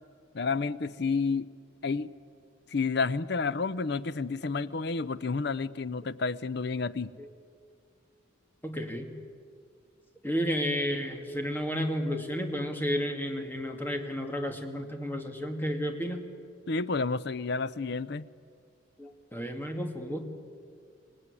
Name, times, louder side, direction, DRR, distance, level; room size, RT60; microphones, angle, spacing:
voice 1, 0.3-1.5 1.8-2.1 2.7-7.1 16.7-18.3, left 4 dB, 60° left, 17 dB, 0.6 m, -30 dB
voice 2, 8.6-9.1 10.2-16.2 19.0-20.2, equal, 10° left, 4 dB, 2.3 m, -32 dB
26.0 x 18.5 x 9.8 m, 2.2 s
head